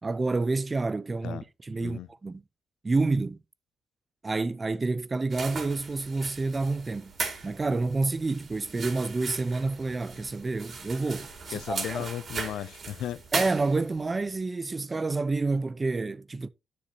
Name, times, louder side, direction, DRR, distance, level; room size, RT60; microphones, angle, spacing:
voice 1, 0.0-2.4 2.8-3.4 4.2-7.1 7.4-12.1 13.3-16.5, right 3 dB, 25° right, 0.6 m, -29 dB
sound 1, 5.3-14.1, right 4 dB, 50° right, 3.1 m, -38 dB
voice 2, 11.5-13.2, left 11 dB, 80° left, 0.4 m, -35 dB
10.0 x 9.7 x 2.8 m
cardioid pair, 90°, 0 cm